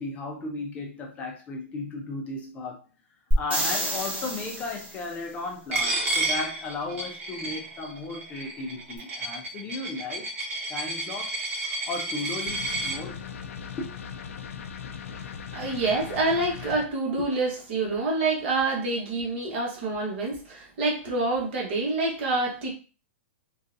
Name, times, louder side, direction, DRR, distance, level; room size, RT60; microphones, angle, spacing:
voice 1, 0.0-2.8 3.4-10.3 10.7-13.3 13.8-13.9, left 3 dB, 20° left, 0.5 m, -35 dB
sound 1, 3.3-5.1 9.0-9.1, right 1 dB, 20° right, 1.3 m, -28 dB
Coin (dropping), 5.7-13.0, right 2 dB, 80° right, 0.9 m, -31 dB
sound 2, 12.5-16.9, left 7 dB, 80° left, 0.4 m, -39 dB
voice 2, 15.5-22.7, right 3 dB, 50° right, 1.2 m, -27 dB
3.7 x 2.4 x 2.6 m
hypercardioid pair, 155°, 7 cm